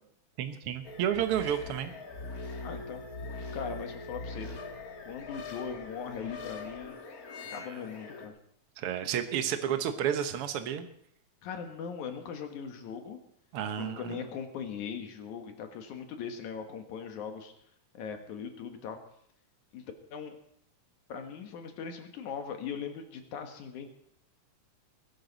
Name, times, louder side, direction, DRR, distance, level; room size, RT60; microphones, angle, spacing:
voice 1, 0.4-1.9 7.6-7.8 8.8-10.9 13.5-14.2, right 9 dB, 60° right, 8 dB, 1.6 m, -31 dB
sound 1, 0.8-8.3, left 3 dB, 40° left, 1.4 m, -42 dB
voice 2, 2.6-3.0 3.5-4.5 5.0-7.0 7.5-8.3 11.4-13.2 13.8-17.5 17.9-19.0 19.7-20.4 21.1-23.9, left 6 dB, 75° left, 5 dB, 2.8 m, -40 dB
21.0 x 11.0 x 4.1 m, 0.69 s
omnidirectional pair, 3.5 m